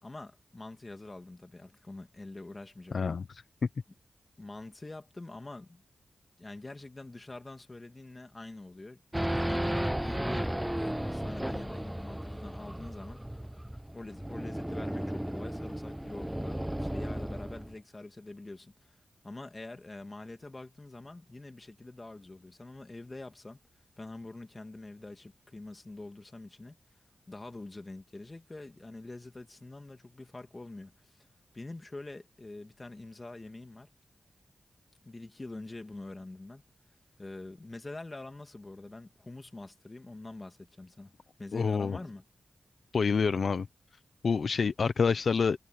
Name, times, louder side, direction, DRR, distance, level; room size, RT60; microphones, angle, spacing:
voice 1, 0.0-3.2 4.4-5.8 6.4-9.0 9.4-9.7 10.0-13.2 13.9-19.0 19.2-23.6 24.0-26.8 27.3-31.2 31.5-33.9 35.0-36.6 37.2-41.1 41.4-42.2, left 2 dB, 30° left, 2.6 m, -45 dB
voice 2, 2.9-3.2 41.5-42.0 42.9-43.7 44.2-45.6, left 5 dB, 70° left, 0.8 m, -27 dB
Race car auto racing / Idling / Accelerating revving vroom, 9.1-17.7, right 1 dB, 5° right, 0.8 m, -34 dB
wide cardioid pair, 75°, 0 cm